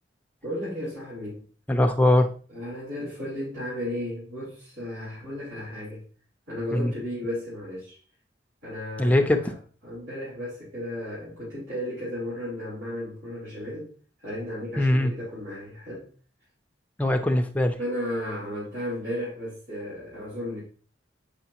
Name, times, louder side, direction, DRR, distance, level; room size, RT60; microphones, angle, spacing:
voice 1, 0.4-1.5 2.5-6.0 6.5-8.0 8.6-9.5 9.8-13.9 14.2-16.1 17.8-20.6, left 1 dB, 80° right, -10 dB, 3.8 m, -34 dB
voice 2, 1.7-2.3 6.7-6.9 9.0-9.5 14.8-15.1 17.0-17.8, left 1 dB, 10° left, 5 dB, 0.6 m, -21 dB
8.2 x 5.5 x 2.9 m, 0.42 s
head